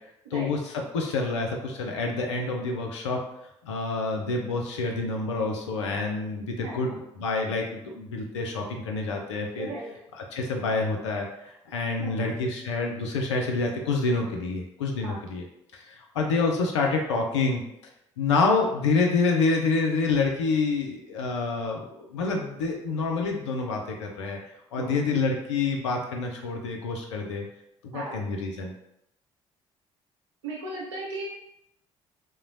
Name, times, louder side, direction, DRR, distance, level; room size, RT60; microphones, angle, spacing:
voice 1, 0.3-3.2 3.6-9.7 10.1-15.5 15.7-17.6 18.2-24.4 24.7-27.5 27.8-28.7, left 3 dB, 80° left, 1 dB, 0.4 m, -27 dB
voice 2, 6.6-6.9 9.6-9.8 12.0-12.3 15.0-15.2 24.8-24.9 27.9-28.1 30.4-31.3, right 2 dB, 75° right, -4 dB, 0.7 m, -36 dB
3.0 x 2.0 x 2.5 m, 0.79 s
figure-of-eight pair, 45°, 15 cm